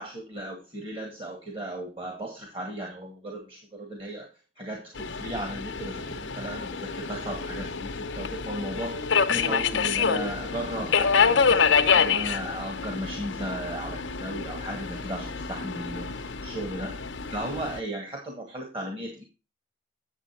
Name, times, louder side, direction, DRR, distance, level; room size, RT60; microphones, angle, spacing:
voice 1, 0.0-4.3 4.6-11.6 11.9-19.2, right 1 dB, 30° right, 1 dB, 2.0 m, -36 dB
Subway metro underground, 5.0-17.8, left 6 dB, 85° left, 0.8 m, -27 dB
9.1 x 7.4 x 4.4 m, 0.28 s
head